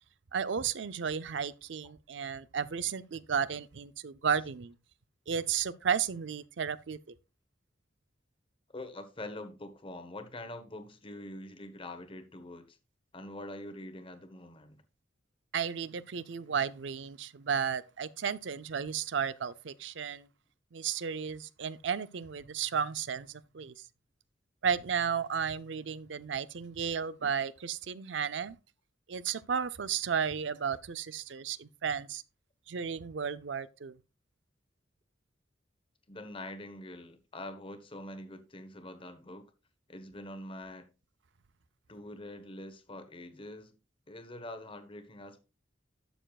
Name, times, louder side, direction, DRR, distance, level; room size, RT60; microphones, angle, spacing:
voice 1, 0.3-4.7 5.3-7.0 15.5-20.3 20.7-23.7 24.6-28.6 29.1-32.2 32.7-33.9, right 7 dB, 65° right, 0.5 m, -33 dB
voice 2, 8.7-12.8 13.1-14.8 36.1-39.5 39.9-40.9 41.9-43.7 44.1-45.4, left 1 dB, 30° left, 1.1 m, -44 dB
12.0 x 6.8 x 2.4 m
head